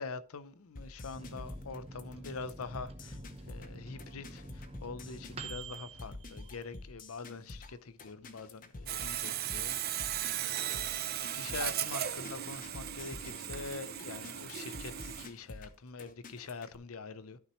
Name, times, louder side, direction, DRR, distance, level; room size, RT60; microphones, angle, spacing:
voice 1, 0.0-3.2 3.5-10.1 10.4-10.9 11.4-17.4, left 4 dB, 90° left, 0.7 m, -44 dB
sound 1, 0.8-16.8, left 2 dB, 40° left, 0.9 m, -48 dB
Microwave oven, 1.1-7.2 7.6-7.7 8.0-8.6, right 3 dB, 30° right, 0.9 m, -48 dB
Sawing, 8.9-15.3, right 11 dB, 45° right, 0.6 m, -37 dB
13.0 x 5.9 x 3.1 m
head